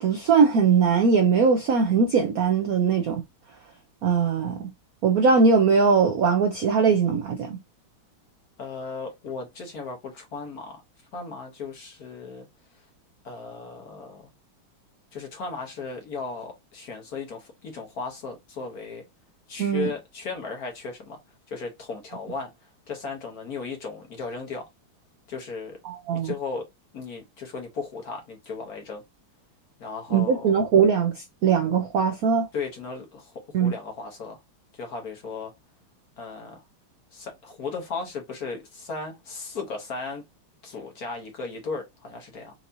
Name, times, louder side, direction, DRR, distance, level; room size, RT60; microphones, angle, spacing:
voice 1, 0.0-3.2 4.0-4.7 5.0-7.6 19.6-19.9 25.8-26.3 30.1-32.5 33.5-33.7, right 5 dB, 85° right, 0.7 m, -21 dB
voice 2, 8.6-10.8 11.1-12.5 13.2-14.3 15.1-19.0 19.5-21.2 21.5-22.5 22.9-24.7 25.3-25.8 26.1-26.6 26.9-29.0 29.8-30.6 32.5-33.3 33.6-34.4 34.7-35.5 36.2-36.6 37.1-40.2 40.6-42.5, left 4 dB, 55° left, 1.1 m, -36 dB
4.5 x 2.7 x 2.6 m
omnidirectional pair, 2.4 m